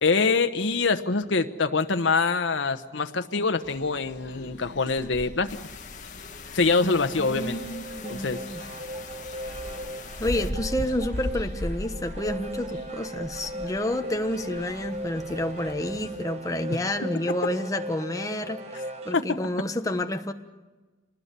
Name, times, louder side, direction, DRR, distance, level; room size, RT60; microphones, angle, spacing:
voice 1, 0.0-5.6 6.5-7.6 8.1-8.4 16.7-16.8 19.1-19.4, left 4 dB, 80° left, 7 dB, 1.0 m, -24 dB
sound 1, 3.6-16.2, equal, 65° left, 5.3 m, -39 dB
sound 2, 5.5-10.5, left 6 dB, 40° left, 1.9 m, -43 dB
sound 3, 6.7-19.3, right 1 dB, 35° right, 1.2 m, -38 dB
voice 2, 6.8-8.6 10.2-20.3, left 1 dB, 20° left, 6 dB, 1.2 m, -30 dB
26.0 x 20.0 x 6.8 m, 1.2 s
head